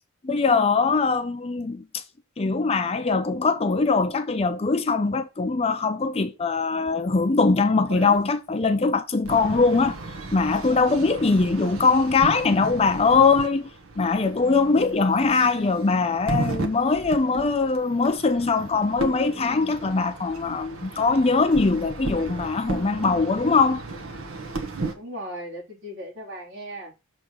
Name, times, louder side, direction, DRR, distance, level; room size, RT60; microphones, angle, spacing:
voice 1, 0.2-2.0 2.4-10.0 10.3-13.7 14.0-23.8, left 4 dB, 30° left, 0.5 m, -22 dB
sound 1, 7.9-8.2 9.2-24.9, right 2 dB, 80° right, 1.2 m, -35 dB
voice 2, 11.4-11.9 25.0-26.9, equal, 60° right, 3.6 m, -38 dB
6.5 x 3.2 x 5.5 m
head